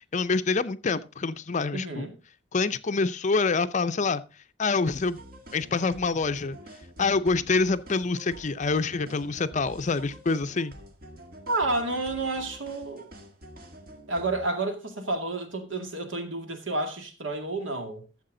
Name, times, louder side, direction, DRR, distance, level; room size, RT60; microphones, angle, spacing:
voice 1, 0.1-2.1 2.5-4.2 4.6-5.2 5.5-6.6 7.0-10.7, left 4 dB, 40° left, 0.5 m, -26 dB
voice 2, 1.7-2.1 11.5-13.1 14.1-18.0, right 2 dB, 75° right, 2.2 m, -30 dB
sound 1, 4.9-14.5, equal, 50° right, 1.9 m, -47 dB
13.0 x 7.4 x 3.8 m
head